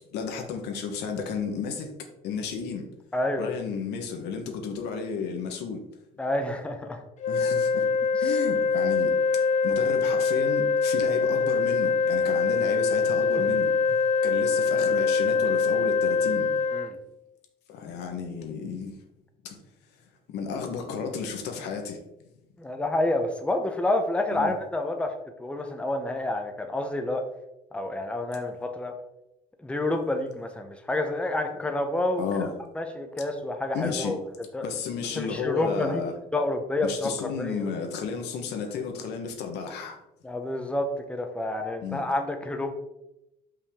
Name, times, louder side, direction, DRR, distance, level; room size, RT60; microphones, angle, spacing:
voice 1, 0.1-1.9 2.2-2.9 3.4-5.8 7.3-7.9 8.2-13.7 14.2-16.5 17.7-18.9 19.4-19.6 20.3-22.0 24.3-24.5 32.2-32.5 33.7-34.2 34.6-36.1 36.8-40.0 41.8-42.0, left 5 dB, 80° left, 4 dB, 1.2 m, -32 dB
voice 2, 3.1-3.5 6.2-7.0 8.3-8.4 16.7-17.0 22.6-25.1 25.4-27.2 27.7-28.9 29.6-32.2 32.7-34.2 34.5-34.6 35.2-36.0 36.3-37.7 40.2-42.7, left 2 dB, 5° left, 5 dB, 0.7 m, -28 dB
sound 1, 7.2-16.9, left 5 dB, 45° left, 0.5 m, -24 dB
5.5 x 5.0 x 3.6 m, 0.89 s
cardioid pair, 110°, 17 cm